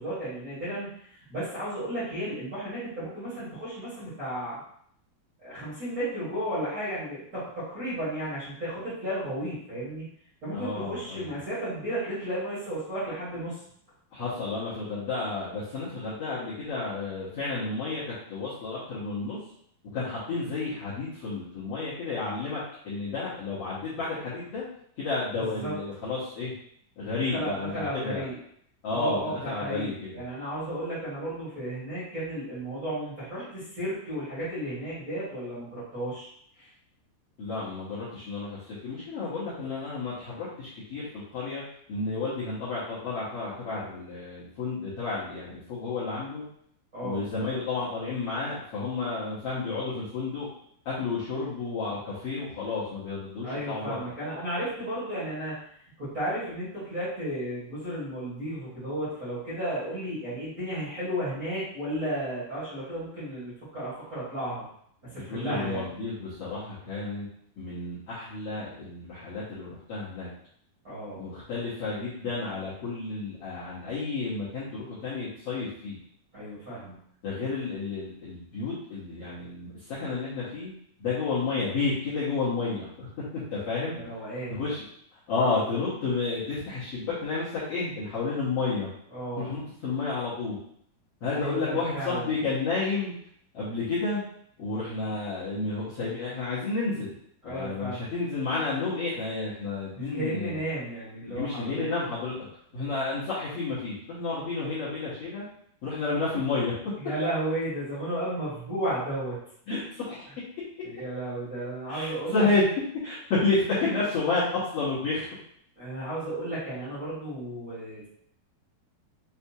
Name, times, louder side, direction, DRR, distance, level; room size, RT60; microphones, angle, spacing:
voice 1, 0.0-4.6 5.4-10.0 10.4-13.6 25.4-25.7 27.3-28.3 28.9-36.3 36.5-36.7 46.9-47.2 53.4-55.5 56.0-64.6 65.0-65.9 70.8-71.3 76.3-76.9 84.0-84.7 89.1-89.5 91.4-92.3 97.4-98.0 99.9-101.9 102.7-102.9 107.0-109.4 110.8-112.4 115.8-118.1, right 1 dB, 85° right, -12 dB, 0.7 m, -33 dB
voice 2, 10.5-11.4 14.1-19.4 19.9-22.6 22.8-24.6 25.0-26.5 27.0-28.2 28.8-30.2 37.4-41.6 41.9-46.4 47.0-50.5 50.8-54.0 65.2-67.3 67.6-70.3 71.2-76.0 77.2-80.7 81.0-83.1 83.5-84.0 84.5-84.8 85.3-88.9 89.4-90.6 91.2-93.1 93.5-94.2 94.6-97.1 97.4-100.6 101.3-102.3 102.7-105.4 105.8-106.7 109.7-109.8 110.1-110.2 111.9-112.6 113.0-114.4 114.7-115.2, left 3 dB, 80° left, -11 dB, 1.3 m, -31 dB
6.4 x 2.3 x 2.8 m, 0.67 s
omnidirectional pair, 4.4 m